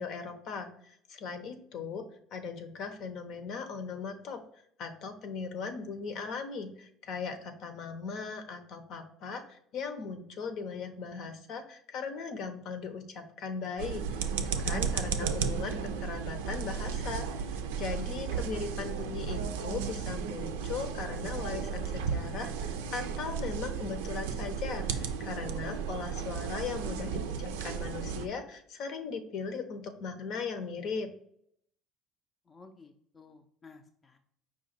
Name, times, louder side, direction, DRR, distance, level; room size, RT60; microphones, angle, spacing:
voice 1, 0.0-2.1 2.3-4.4 4.8-14.2 14.6-31.1, left 5 dB, 60° left, 7 dB, 0.7 m, -38 dB
sound 1, 13.8-28.3, right 6 dB, 85° right, 0.4 m, -34 dB
voice 2, 18.5-19.0 32.5-34.2, left 4 dB, 30° left, 5 dB, 0.5 m, -55 dB
4.9 x 2.3 x 4.3 m, 0.67 s
hypercardioid pair, 80°, 0 cm